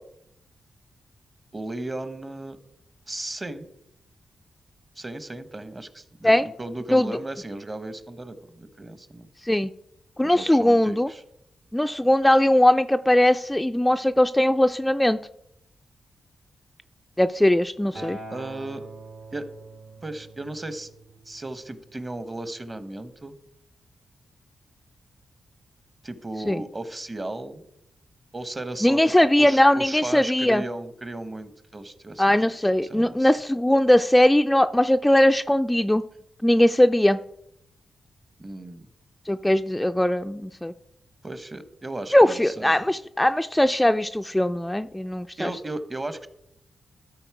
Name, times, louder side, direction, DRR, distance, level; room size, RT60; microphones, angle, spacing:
voice 1, 1.5-2.6 3.1-3.7 5.0-9.3 10.2-11.2 18.3-18.8 19.3-19.5 20.0-20.9 21.2-23.3 26.0-27.6 28.3-29.1 29.4-32.5 32.9-33.3 38.4-38.9 41.2-42.8 45.4-46.3, right 2 dB, 30° right, 12 dB, 0.9 m, -35 dB
voice 2, 10.2-11.1 11.7-15.2 17.2-18.2 26.5-26.6 28.8-30.6 32.2-36.0 36.4-37.2 39.3-40.7 42.1-45.5, left 1 dB, 10° left, 8 dB, 0.3 m, -20 dB
Acoustic guitar, 17.9-22.2 23.1-23.2, right 2 dB, 75° right, 2.1 m, -44 dB
12.5 x 4.3 x 4.7 m, 0.79 s
cardioid pair, 65°, 0 cm